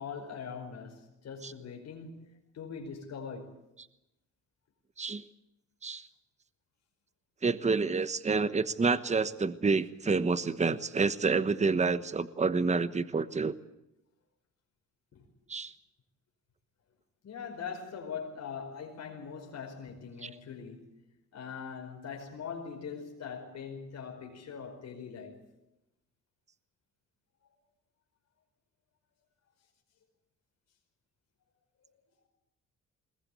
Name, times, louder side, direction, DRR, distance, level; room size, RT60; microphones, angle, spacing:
voice 1, 0.0-3.6 15.1-15.3 17.2-21.0 21.3-25.5, left 6 dB, 60° left, 1 dB, 5.1 m, -42 dB
voice 2, 7.4-13.6 15.5-15.7 20.2-20.3, right 4 dB, 25° right, 13 dB, 1.1 m, -28 dB
21.5 x 19.5 x 8.4 m, 0.88 s
cardioid pair, 90°, 30 cm